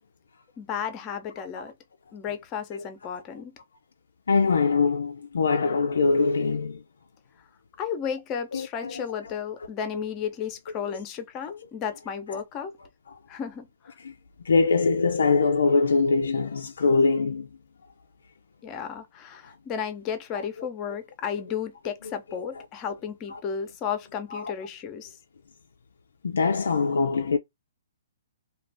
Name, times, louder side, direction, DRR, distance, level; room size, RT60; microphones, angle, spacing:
voice 1, 0.6-1.7 2.1-3.5 7.8-12.7 13.3-14.0 18.6-25.2, left 7 dB, 25° left, 0.7 m, -33 dB
voice 2, 4.3-6.8 8.5-9.3 9.9-10.0 10.9-11.0 12.3-12.4 13.1-13.2 14.0-14.1 14.4-17.5 19.4-19.5 20.6-20.7 23.3-23.4 24.3-24.5 26.2-27.4, left 4 dB, 80° left, 0.4 m, -23 dB
2.4 x 2.3 x 3.3 m
hypercardioid pair, 135°, 0 cm